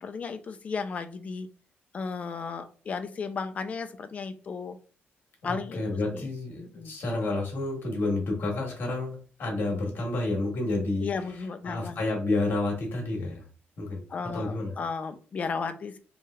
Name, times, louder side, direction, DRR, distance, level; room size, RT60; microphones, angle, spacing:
voice 1, 0.0-1.5 1.9-4.8 5.4-5.8 6.1-6.3 6.6-6.9 11.0-12.0 14.1-16.0, left 5 dB, 35° left, 9 dB, 0.3 m, -34 dB
voice 2, 5.4-13.5 13.8-14.0 14.3-14.7, left 2 dB, 55° left, 0 dB, 1.1 m, -30 dB
3.1 x 2.7 x 2.3 m, 0.39 s
wide cardioid pair, 165°, 4 cm